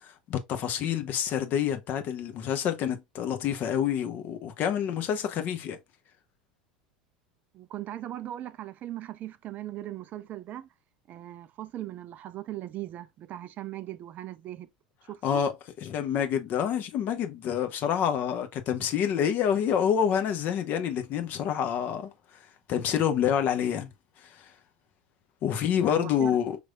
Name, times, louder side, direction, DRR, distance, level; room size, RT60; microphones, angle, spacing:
voice 1, 0.0-5.8 15.2-15.5 15.8-22.1 22.7-23.9 24.2-24.5 25.4-26.6, left 9 dB, 45° left, 0.8 m, -27 dB
voice 2, 7.5-10.7 11.1-14.7 15.1-15.4 25.8-26.4, right 13 dB, 40° right, 0.4 m, -39 dB
5.2 x 3.2 x 2.3 m
figure-of-eight pair, 75°, 4 cm